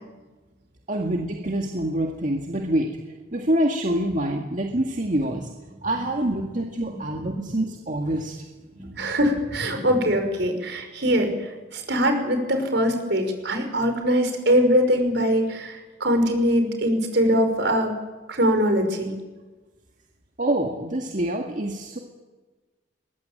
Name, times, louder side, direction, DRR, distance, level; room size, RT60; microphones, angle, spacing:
voice 1, 0.9-2.9 3.3-5.5 5.8-8.3 20.4-22.0, right 1 dB, 45° right, 2 dB, 2.0 m, -26 dB
voice 2, 6.9-7.5 8.7-17.9 18.3-19.1, equal, 65° right, 5 dB, 5.6 m, -22 dB
23.0 x 21.5 x 9.1 m, 1.3 s
head